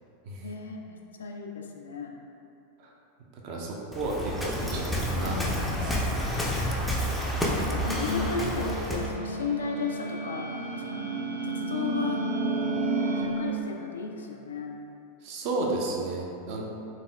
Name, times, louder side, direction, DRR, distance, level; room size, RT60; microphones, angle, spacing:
voice 1, 0.4-2.2 5.0-6.0 7.7-12.2 13.2-14.8, left 5 dB, 65° left, 2 dB, 0.3 m, -35 dB
voice 2, 3.4-5.9 15.2-16.7, right 2 dB, 45° right, -2 dB, 0.6 m, -32 dB
Waves surf, 3.9-9.2, equal, 5° left, 0.4 m, -29 dB
sound 1, 8.1-13.2, right 2 dB, 85° right, 0.8 m, -31 dB
4.0 x 3.4 x 2.3 m, 2.7 s
figure-of-eight pair, 90°, 0 cm